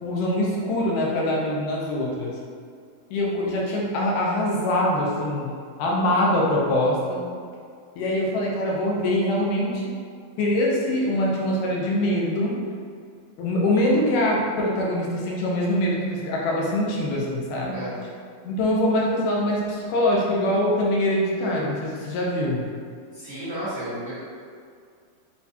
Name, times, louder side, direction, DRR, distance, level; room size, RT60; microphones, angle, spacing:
voice 1, 0.0-2.4 3.1-5.5 5.8-7.3 8.0-9.9 10.4-12.6 13.4-17.9 18.5-22.7, left 1 dB, 80° left, -3 dB, 2.2 m, -23 dB
voice 2, 23.1-24.1, equal, 65° right, -15 dB, 1.0 m, -32 dB
6.7 x 2.3 x 2.7 m, 2.2 s
omnidirectional pair, 3.9 m